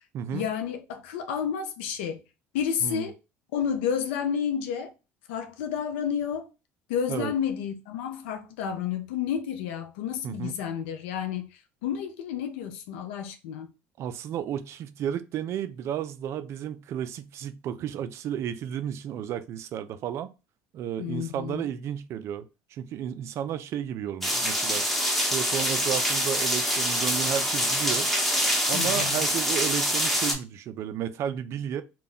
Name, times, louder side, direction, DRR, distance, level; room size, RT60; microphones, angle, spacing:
voice 1, 0.3-2.2 2.5-3.2 3.5-4.9 5.3-6.5 6.9-13.7 21.0-21.7 28.7-29.2, left 8 dB, 90° left, 0.4 m, -31 dB
voice 2, 10.2-10.5 14.0-20.3 20.7-24.8 25.3-28.1 28.7-31.8, right 9 dB, 50° right, 0.3 m, -32 dB
sound 1, 24.2-30.3, equal, ahead, 0.8 m, -25 dB
2.2 x 2.1 x 3.6 m
supercardioid pair, 100°, 6 cm